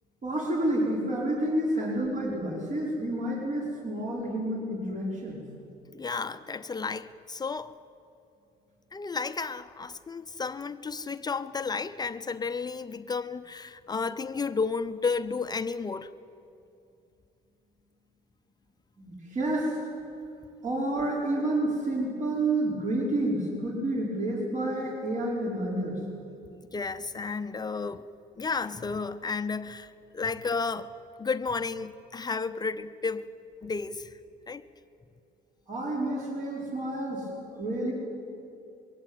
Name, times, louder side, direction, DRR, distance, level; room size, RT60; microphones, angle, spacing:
voice 1, 0.2-5.4 19.0-19.8 20.6-26.0 35.7-37.9, right 1 dB, 50° right, 5.3 m, -29 dB
voice 2, 5.9-7.7 8.9-16.1 26.7-28.1 28.4-30.9 31.2-33.3 33.6-34.1 34.5-34.6, left 4 dB, 25° left, 0.7 m, -32 dB
22.0 x 16.5 x 9.1 m
cardioid pair, 110°, 17 cm